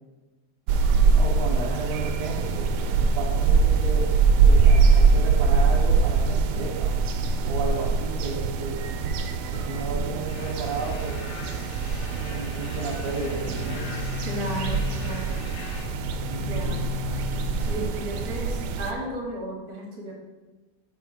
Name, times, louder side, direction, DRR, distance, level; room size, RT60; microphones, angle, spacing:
sound 1, 0.7-18.9, right 5 dB, 85° right, 1.2 m, -23 dB
voice 1, 1.1-4.1 4.4-7.0 7.4-8.8 9.5-11.2 12.2-13.9 16.3-16.7, right 3 dB, 40° right, -2 dB, 1.1 m, -33 dB
sound 2, 10.3-15.9, left 4 dB, 80° left, 1.4 m, -43 dB
Boom, 12.8-18.7, left 10 dB, 55° left, 1.7 m, -36 dB
voice 2, 14.2-15.5 16.4-16.8 17.6-20.1, right 2 dB, 70° right, -1 dB, 1.6 m, -34 dB
5.4 x 4.1 x 4.9 m, 1.2 s
omnidirectional pair, 1.7 m